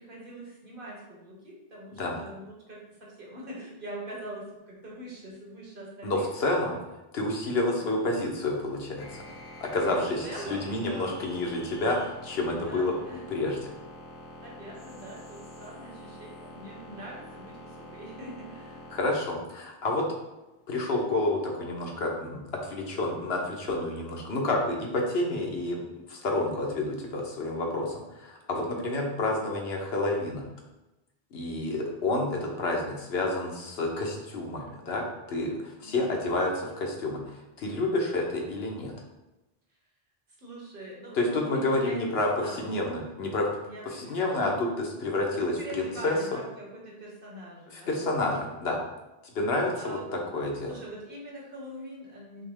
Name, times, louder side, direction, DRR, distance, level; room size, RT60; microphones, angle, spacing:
voice 1, 0.0-6.2 7.8-8.3 9.9-11.3 12.3-13.2 14.4-18.8 35.8-36.5 40.4-42.7 43.6-44.5 45.3-48.0 49.7-50.3 50.7-52.4, right 1 dB, 60° right, -4 dB, 1.4 m, -43 dB
voice 2, 6.0-6.8 7.1-9.2 9.6-12.9 13.3-13.6 18.9-20.1 20.7-30.5 31.3-38.9 41.1-43.5 43.9-46.2 47.7-48.8 49.3-50.7, left 2 dB, 80° left, 0 dB, 1.1 m, -29 dB
sound 1, 9.0-24.9, left 1 dB, 30° left, 0.6 m, -47 dB
6.0 x 2.1 x 3.6 m, 0.99 s
omnidirectional pair, 1.0 m